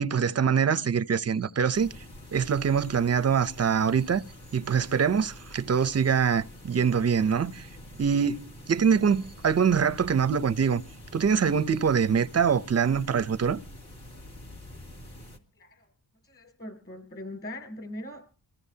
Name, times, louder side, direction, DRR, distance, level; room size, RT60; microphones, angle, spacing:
voice 1, 0.0-1.9 2.3-4.2 4.5-7.7 8.0-8.4 8.7-10.8 11.1-13.6, right 6 dB, 35° right, 0.6 m, -24 dB
sound 1, 1.7-15.4, equal, 60° left, 2.6 m, -46 dB
voice 2, 15.5-15.9 16.2-18.3, left 1 dB, 30° left, 6.6 m, -41 dB
25.0 x 14.5 x 2.8 m
wide cardioid pair, 115°, 44 cm